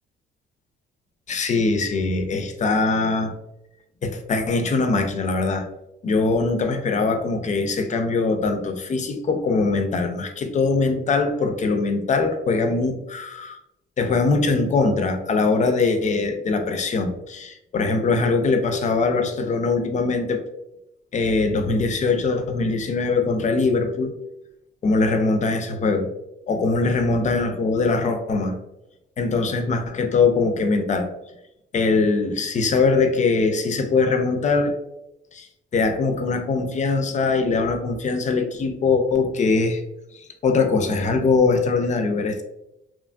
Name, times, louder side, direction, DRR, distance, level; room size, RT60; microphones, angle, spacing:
voice 1, 1.3-3.3 4.0-5.7 6.0-13.6 14.0-20.4 21.1-24.1 24.8-26.1 26.5-28.6 29.2-31.1 31.7-34.7 35.3-35.5 35.7-39.8 40.1-42.4, left 3 dB, 35° left, 6 dB, 0.4 m, -22 dB
2.9 x 2.5 x 2.2 m, 0.88 s
cardioid pair, 90°, 20 cm